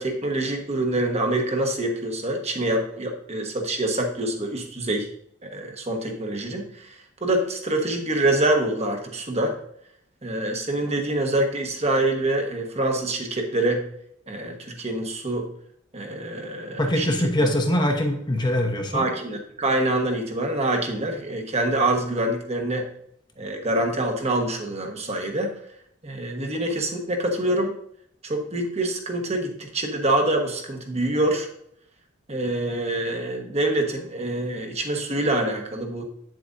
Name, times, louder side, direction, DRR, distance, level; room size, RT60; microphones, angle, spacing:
voice 1, 0.0-5.1 5.4-7.0 7.2-9.6 10.2-13.8 14.3-15.5 15.9-17.1 17.4-17.5 18.9-22.8 23.4-25.5 26.0-27.7 28.2-31.5 32.3-36.0, right 1 dB, 30° right, 3 dB, 1.2 m, -25 dB
voice 2, 16.8-19.1, left 1 dB, 20° left, 3 dB, 1.0 m, -23 dB
8.7 x 7.5 x 2.6 m, 0.69 s
head